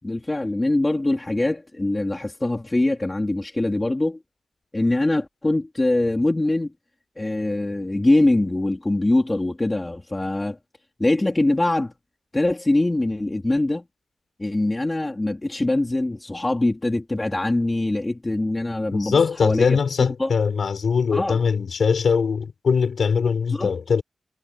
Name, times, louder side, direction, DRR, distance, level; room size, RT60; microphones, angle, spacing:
voice 1, 0.0-4.2 4.7-6.7 7.2-10.6 11.0-11.9 12.3-13.8 14.4-19.8 20.2-20.3 21.1-21.4 23.5-23.7, left 2 dB, 20° left, 3.8 m, -23 dB
voice 2, 18.9-24.0, left 6 dB, 70° left, 6.6 m, -21 dB
wide cardioid pair, 120°, 0 cm